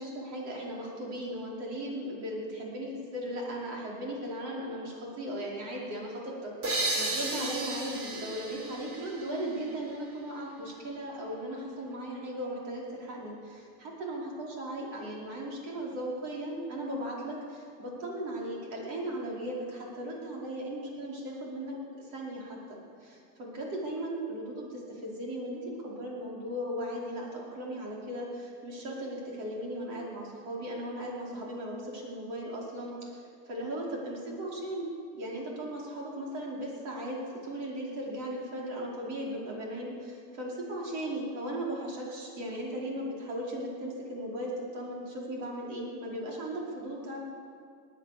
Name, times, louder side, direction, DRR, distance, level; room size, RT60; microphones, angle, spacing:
voice 1, 0.0-47.2, right 1 dB, 70° right, -3 dB, 5.0 m, -37 dB
sound 1, 6.6-10.2, right 2 dB, 45° right, 2.9 m, -34 dB
20.0 x 9.1 x 7.0 m, 2.3 s
supercardioid pair, 110°, 32 cm